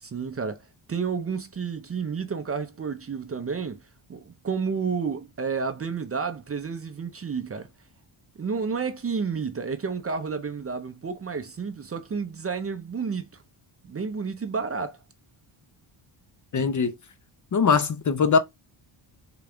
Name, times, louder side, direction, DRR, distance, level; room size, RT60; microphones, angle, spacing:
voice 1, 0.0-3.8 4.1-7.7 8.4-13.4 13.8-15.0, right 5 dB, 30° right, 0.5 m, -31 dB
voice 2, 16.5-16.9 17.5-18.4, left 5 dB, 40° left, 0.6 m, -21 dB
3.9 x 2.2 x 3.4 m
cardioid pair, 95°, 49 cm